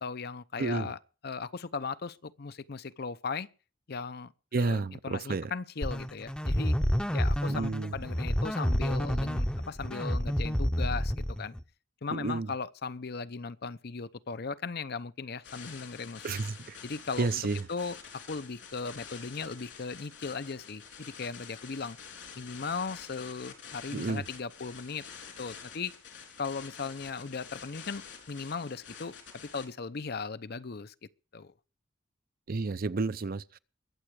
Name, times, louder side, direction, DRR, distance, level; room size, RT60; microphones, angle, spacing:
voice 1, 0.0-3.5 3.9-4.3 4.6-6.8 7.1-11.5 12.0-16.3 16.8-17.3 17.7-22.0 22.4-25.0 25.4-25.9 26.4-30.9 31.3-31.5, left 4 dB, 55° left, 0.7 m, -37 dB
voice 2, 0.6-0.9 4.5-5.5 7.5-7.9 12.1-12.5 16.2-16.8 17.2-17.7 23.9-24.2 32.5-33.6, right 3 dB, 50° right, 0.6 m, -31 dB
sound 1, 5.8-11.6, equal, 5° left, 0.7 m, -29 dB
sound 2, 15.4-29.7, left 6 dB, 75° left, 4.1 m, -48 dB
22.0 x 7.9 x 4.8 m
head